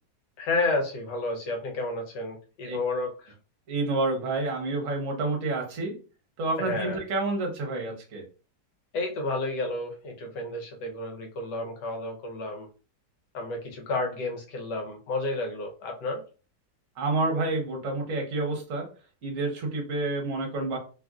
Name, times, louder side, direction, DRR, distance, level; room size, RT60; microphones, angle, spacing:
voice 1, 0.4-3.3 6.6-7.0 8.9-12.7 13.3-16.2, left 2 dB, 75° left, 2 dB, 1.4 m, -31 dB
voice 2, 3.7-5.9 6.4-8.2 17.0-18.9 19.2-20.8, right 3 dB, 55° right, 1 dB, 1.2 m, -29 dB
3.1 x 2.5 x 2.3 m, 0.35 s
omnidirectional pair, 1.9 m